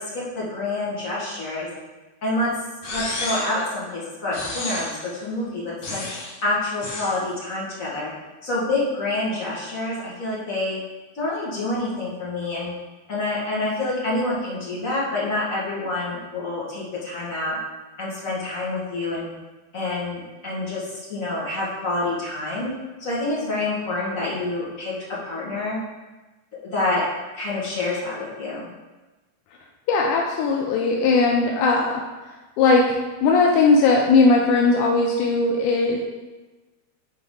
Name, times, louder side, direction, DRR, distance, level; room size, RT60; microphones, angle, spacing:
voice 1, 0.0-1.7 2.2-2.5 2.9-6.0 6.4-8.1 8.4-10.8 11.1-12.7 13.1-17.6 18.0-19.3 19.7-22.7 23.0-24.9 25.2-25.8 26.7-27.0 27.3-28.7, left 2 dB, 35° left, -7 dB, 1.6 m, -27 dB
sound 1, 2.8-3.6 4.3-5.1 5.8-6.4 6.8-7.2, left 2 dB, 55° left, 2.4 m, -31 dB
voice 2, 29.9-32.0 32.6-36.0, left 3 dB, 80° left, 0 dB, 2.1 m, -18 dB
8.8 x 4.6 x 3.9 m, 1.2 s
omnidirectional pair, 3.8 m